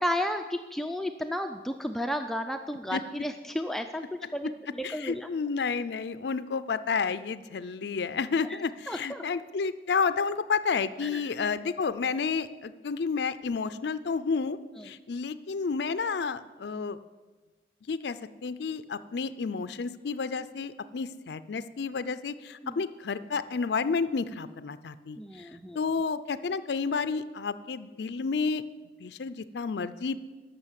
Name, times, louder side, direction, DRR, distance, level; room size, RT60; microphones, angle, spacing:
voice 1, 0.0-4.0 4.3-4.5 4.8-5.3 8.9-9.2 11.0-11.2 22.6-22.7 25.2-25.8, equal, ahead, 6 dB, 0.4 m, -32 dB
voice 2, 2.9-3.2 4.2-4.5 4.8-14.6 14.8-17.0 17.9-25.5 25.7-28.6 29.0-30.3, left 5 dB, 70° left, 13 dB, 0.4 m, -31 dB
13.0 x 6.3 x 8.1 m, 1.2 s
head